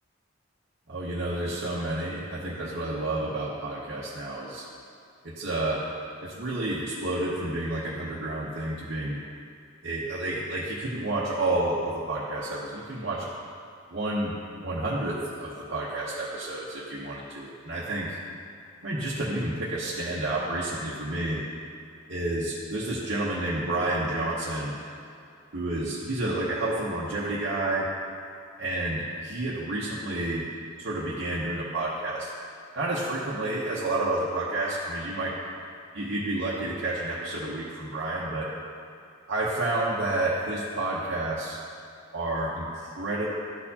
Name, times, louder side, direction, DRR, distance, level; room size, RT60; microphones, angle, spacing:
voice 1, 0.9-4.6 5.2-5.9 6.2-9.2 9.8-13.3 13.9-14.3 14.6-18.2 18.8-21.4 22.1-24.8 25.5-27.9 28.6-30.4 30.8-32.3 32.8-35.4 35.9-38.5 39.3-41.6 42.1-43.3, right 2 dB, 60° right, -7 dB, 0.9 m, -30 dB
12.5 x 4.4 x 2.8 m, 2.6 s
head